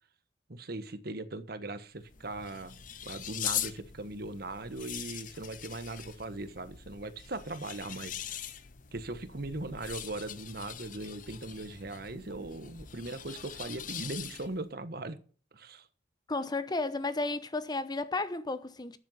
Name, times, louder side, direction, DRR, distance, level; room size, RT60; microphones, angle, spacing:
voice 1, 0.5-8.4 8.9-15.2 15.5-15.9, right 2 dB, 60° right, 1.3 m, -39 dB
sound 1, 1.9-14.7, left 10 dB, 50° left, 0.9 m, -42 dB
voice 2, 16.3-19.0, left 2 dB, 25° left, 0.9 m, -33 dB
12.5 x 7.8 x 5.6 m
head